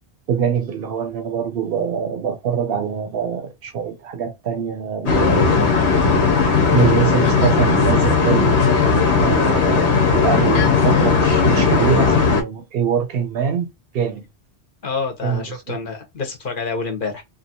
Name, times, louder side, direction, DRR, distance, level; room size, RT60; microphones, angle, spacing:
voice 1, 0.3-5.7 6.7-8.6 9.2-13.7 13.9-14.2 15.2-15.8, right 7 dB, 65° right, 0.7 m, -23 dB
sound 1, 5.1-12.4, left 5 dB, 85° left, 1.1 m, -16 dB
voice 2, 14.8-17.2, left 4 dB, 55° left, 0.9 m, -27 dB
2.7 x 2.3 x 2.7 m
omnidirectional pair, 1.1 m